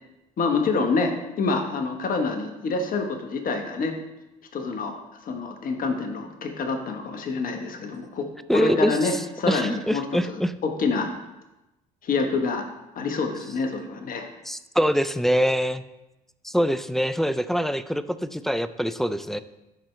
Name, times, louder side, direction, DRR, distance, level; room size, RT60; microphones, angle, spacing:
voice 1, 0.4-4.0 4.5-5.0 5.2-11.1 12.0-12.6 12.9-14.3, left 4 dB, 45° left, 5 dB, 1.1 m, -27 dB
voice 2, 8.5-10.5 14.5-15.8 16.4-19.4, equal, ahead, 14 dB, 0.4 m, -24 dB
12.0 x 4.4 x 3.3 m, 0.98 s
hypercardioid pair, 65°, 19 cm